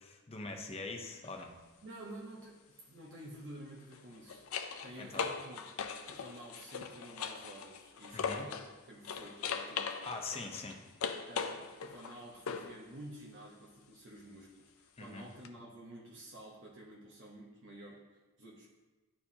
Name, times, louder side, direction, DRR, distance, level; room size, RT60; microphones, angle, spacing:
voice 1, 0.0-1.5 5.0-5.3 8.1-8.5 10.1-10.8 15.0-15.3, left 3 dB, 25° left, 4 dB, 0.7 m, -43 dB
sound 1, 1.2-1.5 3.8-8.7 9.0-12.8 15.4-15.5, left 6 dB, 65° left, 0.5 m, -40 dB
voice 2, 1.8-4.4 4.8-5.6 6.1-8.6 8.9-10.0 11.3-18.0 18.4-18.7, right 1 dB, 55° right, -4 dB, 0.9 m, -50 dB
11.0 x 4.6 x 2.8 m, 1.2 s
head